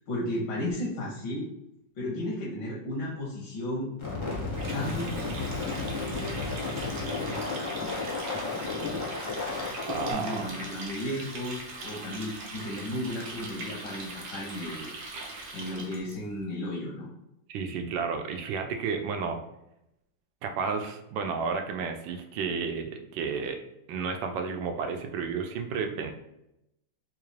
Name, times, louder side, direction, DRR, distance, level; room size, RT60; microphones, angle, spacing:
voice 1, 0.0-1.5 2.0-3.9 4.7-5.1 10.1-14.9 15.5-17.1, left 1 dB, 80° left, -4 dB, 1.5 m, -34 dB
sound 1, 4.0-10.1, left 3 dB, 50° left, 0.3 m, -33 dB
Water tap faucet, 4.5-16.1, right 2 dB, 60° right, 1.1 m, -41 dB
voice 2, 9.9-10.5 11.9-12.0 17.5-19.4 20.4-23.6 23.9-26.1, right 5 dB, 80° right, 5 dB, 1.3 m, -32 dB
4.0 x 2.4 x 3.1 m, 0.84 s
omnidirectional pair, 2.0 m